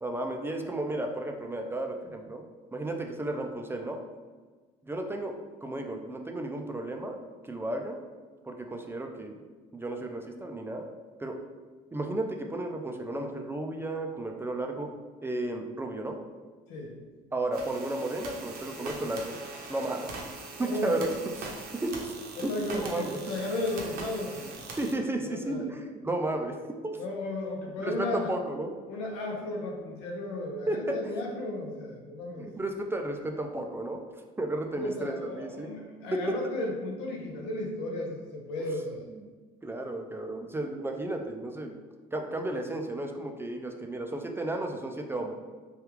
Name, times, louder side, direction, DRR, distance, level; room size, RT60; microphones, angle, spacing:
voice 1, 0.0-2.4 2.7-4.0 4.8-7.2 7.4-8.0 8.4-9.4 9.7-10.9 11.2-11.4 11.9-14.9 15.2-16.2 17.3-19.4 19.7-21.5 21.8-22.1 22.4-23.2 24.8-26.6 26.8-27.0 27.8-28.7 30.7-31.1 32.4-34.0 34.4-35.7 36.1-36.4 39.6-41.7 42.1-45.3, right 1 dB, 15° right, 3 dB, 0.4 m, -33 dB
sound 1, 17.5-24.9, right 3 dB, 65° right, 0.7 m, -42 dB
voice 2, 20.6-21.1 22.5-24.7 25.2-25.7 27.0-28.3 28.9-32.5 34.7-39.1, left 1 dB, 80° left, 0 dB, 0.7 m, -34 dB
3.3 x 2.3 x 3.1 m, 1.4 s
supercardioid pair, 75°, 17 cm